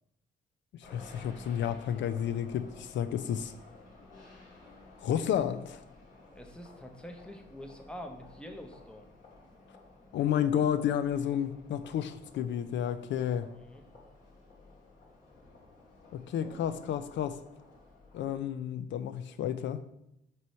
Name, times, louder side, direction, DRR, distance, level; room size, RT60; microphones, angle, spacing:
voice 1, 0.7-3.5 5.0-5.8 10.1-13.5 16.1-17.4 18.1-19.8, left 9 dB, 75° left, 12 dB, 0.4 m, -31 dB
sound 1, 0.8-18.5, left 3 dB, 45° left, 2.5 m, -54 dB
voice 2, 6.3-9.1 13.5-13.8, equal, 5° left, 4 dB, 0.8 m, -46 dB
6.1 x 3.1 x 5.5 m, 0.81 s
cardioid pair, 125°, 19 cm